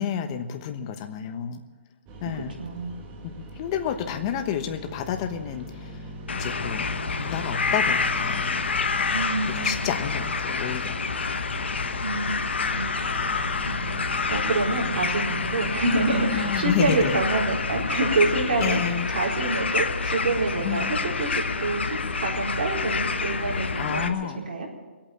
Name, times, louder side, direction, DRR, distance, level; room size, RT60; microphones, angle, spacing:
voice 1, 0.0-1.6 2.2-2.5 3.6-5.9 6.3-6.9 7.2-8.6 9.6-11.0 16.3-17.1 18.6-19.1 20.6-20.9 23.8-24.4, left 8 dB, 30° left, 7 dB, 1.1 m, -30 dB
sound 1, 2.1-17.7, equal, 20° right, 1.8 m, -42 dB
voice 2, 2.6-3.0 9.1-9.9 12.0-12.4 12.7-13.0 13.4-24.7, right 3 dB, 60° right, -2 dB, 4.5 m, -27 dB
sound 2, 6.3-24.1, left 4 dB, 85° left, 1.3 m, -28 dB
22.0 x 8.9 x 7.4 m, 1.3 s
hypercardioid pair, 160°, 6 cm